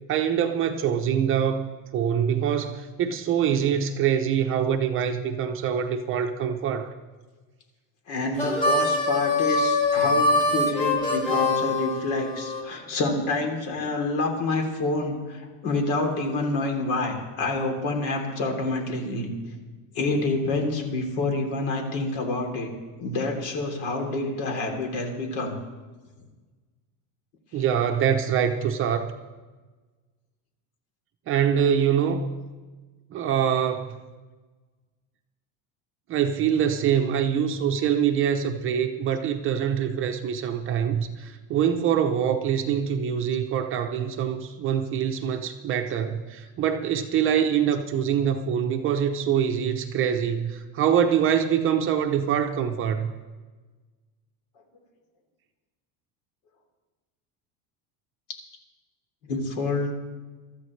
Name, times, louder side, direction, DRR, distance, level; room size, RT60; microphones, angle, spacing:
voice 1, 0.1-6.9 27.5-29.1 31.3-32.3 33.1-33.9 36.1-53.1, right 8 dB, 30° right, 5 dB, 0.7 m, -24 dB
voice 2, 8.1-19.3 19.9-22.7 23.0-25.6 59.2-60.0, left 2 dB, 65° left, 2 dB, 3.3 m, -27 dB
Harmonica, 8.3-12.6, left 2 dB, 15° left, 2.6 m, -23 dB
23.5 x 13.5 x 3.2 m, 1.3 s
cardioid pair, 170°, 41 cm